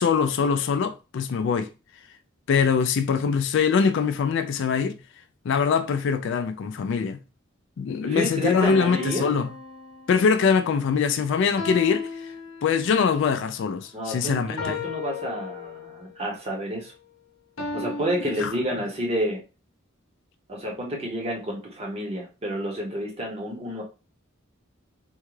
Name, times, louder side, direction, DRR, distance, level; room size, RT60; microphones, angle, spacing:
voice 1, 0.0-1.7 2.5-5.0 5.5-7.2 7.8-9.5 10.1-12.1 12.6-14.8 18.4-18.5, left 6 dB, 60° left, 0.3 m, -23 dB
voice 2, 8.0-9.3 13.9-16.9 17.7-19.4 20.5-23.8, equal, 30° right, 0.9 m, -30 dB
sound 1, 8.6-10.4 11.6-13.0 14.6-16.1 17.6-18.6, left 4 dB, 80° left, 0.7 m, -35 dB
3.6 x 2.3 x 3.1 m
head